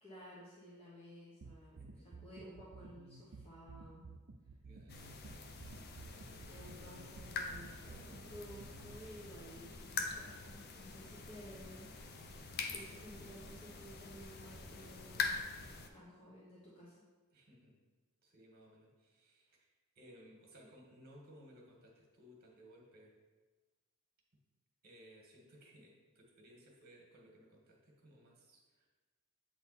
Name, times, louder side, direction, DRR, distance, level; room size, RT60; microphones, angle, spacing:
voice 1, 0.0-1.9 2.2-4.0 6.5-11.9 12.7-15.4 15.9-16.9, equal, 30° left, -7 dB, 1.2 m, -54 dB
sound 1, 1.4-9.0, right 4 dB, 65° right, 0.5 m, -53 dB
voice 2, 1.8-2.1 4.6-5.1 6.1-6.5 17.3-17.8 18.2-23.2 24.8-28.9, equal, 45° right, -1 dB, 1.7 m, -60 dB
sound 2, 4.9-15.9, left 4 dB, 50° left, 0.6 m, -44 dB
7.9 x 3.9 x 4.2 m, 1.3 s
head